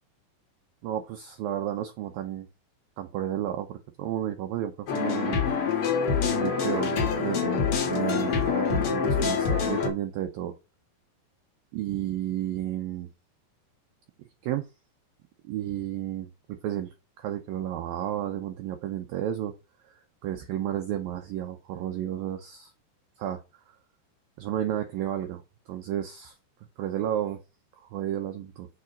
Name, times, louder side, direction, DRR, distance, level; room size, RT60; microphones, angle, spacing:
voice 1, 0.8-2.5 3.0-5.4 6.3-10.5 11.7-13.1 14.4-14.7 15.4-19.5 19.9-22.7 23.2-23.4 24.4-25.4 25.7-26.3 26.8-27.4 27.9-28.7, right 11 dB, 75° right, 2.2 m, -32 dB
sound 1, 4.9-9.9, left 6 dB, 60° left, 1.5 m, -26 dB
7.2 x 4.9 x 5.1 m
omnidirectional pair, 5.1 m